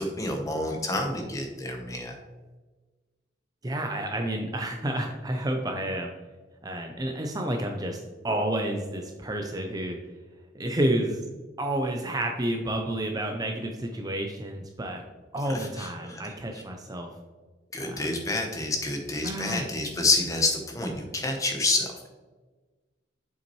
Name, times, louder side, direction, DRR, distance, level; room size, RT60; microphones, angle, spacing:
voice 1, 0.0-2.1 15.5-16.2 17.7-22.1, left 2 dB, 15° left, 3 dB, 0.9 m, -28 dB
voice 2, 3.6-6.1 6.6-8.0 8.2-10.0 10.5-11.2 11.6-15.0 15.3-17.1 17.8-18.1 19.2-19.7, right 1 dB, 20° right, 3 dB, 0.5 m, -30 dB
7.1 x 5.6 x 3.0 m, 1.3 s
head